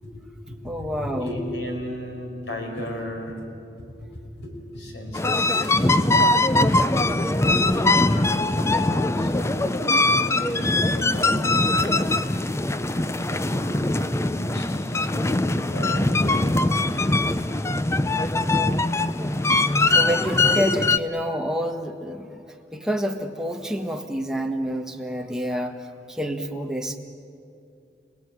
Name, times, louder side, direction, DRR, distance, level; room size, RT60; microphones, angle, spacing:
voice 1, 0.0-3.4 4.4-6.0 6.3-6.4 7.5-7.6 9.2-11.6 13.3-15.5 15.7-16.7, left 1 dB, 90° left, 2 dB, 5.2 m, -35 dB
voice 2, 0.6-1.3 19.9-22.4 22.7-25.8 26.1-27.0, equal, 5° right, 3 dB, 1.5 m, -28 dB
sound 1, 5.1-21.0, left 2 dB, 15° left, 0.6 m, -22 dB
29.5 x 18.5 x 9.6 m, 2.6 s
head